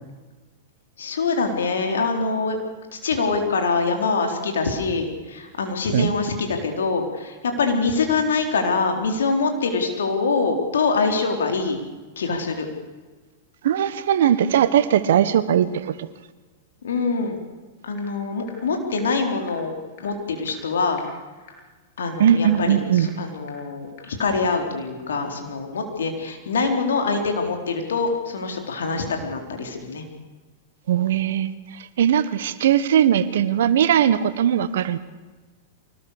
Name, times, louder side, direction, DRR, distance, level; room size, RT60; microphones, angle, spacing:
voice 1, 1.0-2.6 2.9-11.8 12.2-12.7 16.8-17.4 17.8-21.0 22.0-30.0, left 4 dB, 75° left, 4 dB, 4.1 m, -24 dB
voice 2, 13.6-15.9 22.2-23.1 30.9-31.5 32.0-35.0, right 9 dB, 65° right, 14 dB, 1.4 m, -19 dB
sound 1, 18.0-18.1 18.5-18.6 19.0-19.1 19.5-19.6 20.0-20.1 20.5-20.6 21.0-21.1 21.5-21.6 22.0-22.1 22.5-22.6 23.0-23.1 23.5-23.6 24.0-24.1 24.5-24.6, left 11 dB, 55° left, 7.7 m, -45 dB
24.5 x 19.5 x 6.7 m, 1.3 s
hypercardioid pair, 100°, 0 cm